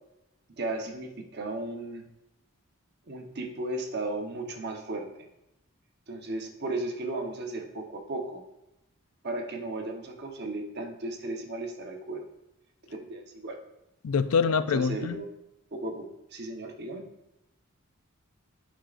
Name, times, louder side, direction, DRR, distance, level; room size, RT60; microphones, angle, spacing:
voice 1, 0.6-2.0 3.1-5.1 6.1-8.4 9.2-12.2 13.0-13.6 14.5-15.3 15.7-17.1, right 2 dB, 50° right, 2 dB, 0.9 m, -35 dB
voice 2, 14.0-15.2, left 5 dB, 80° left, 13 dB, 0.4 m, -25 dB
10.0 x 5.1 x 2.5 m, 0.87 s
head